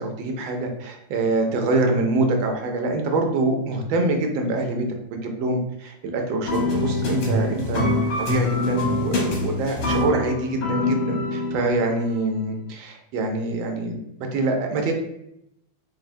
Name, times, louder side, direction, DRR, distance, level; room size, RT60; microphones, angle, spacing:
voice 1, 0.0-4.8 5.1-14.0 14.3-14.9, right 2 dB, 90° right, 3 dB, 1.4 m, -25 dB
sound 1, 6.5-12.0, left 2 dB, 75° left, 1.8 m, -25 dB
5.1 x 2.6 x 2.6 m, 0.79 s
omnidirectional pair, 2.1 m